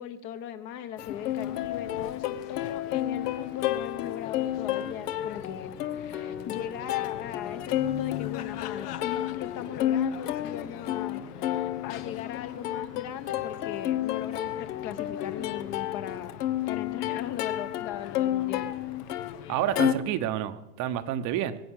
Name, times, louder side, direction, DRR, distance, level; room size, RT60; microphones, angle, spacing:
voice 1, 0.0-16.4 16.7-18.7, left 10 dB, 40° left, 10 dB, 1.2 m, -39 dB
Plucked string instrument, 1.0-19.9, left 12 dB, 75° left, 1.1 m, -31 dB
sound 1, 4.4-16.7, left 1 dB, ahead, 1.2 m, -51 dB
sound 2, 4.5-10.0, left 11 dB, 20° left, 0.6 m, -47 dB
voice 2, 19.5-21.6, right 11 dB, 40° right, 10 dB, 1.0 m, -29 dB
22.0 x 8.6 x 6.5 m, 1.0 s
supercardioid pair, 135°, 46 cm